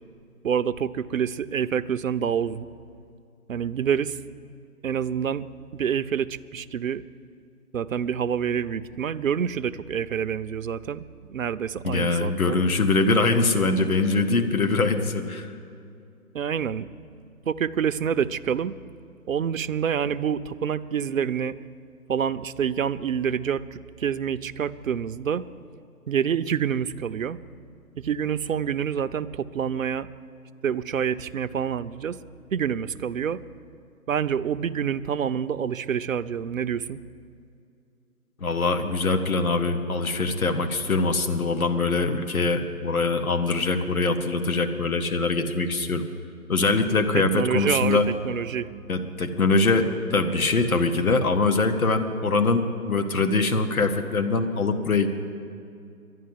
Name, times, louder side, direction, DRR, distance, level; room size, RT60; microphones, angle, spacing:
voice 1, 0.4-2.7 3.5-4.2 4.8-5.5 5.7-7.0 7.7-12.6 16.3-16.9 17.5-18.7 19.3-21.6 22.1-25.4 26.1-27.4 28.0-30.1 30.6-32.2 32.5-33.4 34.1-37.0 47.1-48.7, right 8 dB, 60° right, 12 dB, 0.5 m, -27 dB
voice 2, 11.8-15.5 38.4-46.0 46.5-48.1 48.9-49.9 50.1-55.1, left 3 dB, 65° left, 8 dB, 1.3 m, -23 dB
11.5 x 11.0 x 9.5 m, 2.5 s
figure-of-eight pair, 155°, 46 cm